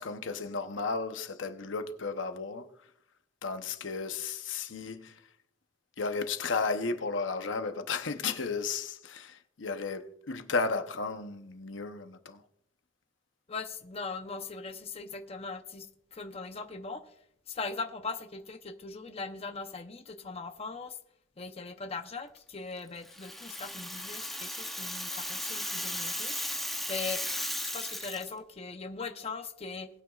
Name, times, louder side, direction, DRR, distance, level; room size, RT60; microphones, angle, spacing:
voice 1, 0.0-2.7 3.4-5.1 6.0-12.4, left 4 dB, 75° left, 0.8 m, -34 dB
voice 2, 13.5-17.2 17.5-21.0 21.4-26.4 26.9-27.2 27.6-29.9, left 4 dB, 30° left, 0.7 m, -40 dB
Rattle (instrument), 23.0-28.3, left 1 dB, ahead, 0.9 m, -36 dB
20.5 x 9.2 x 2.4 m
head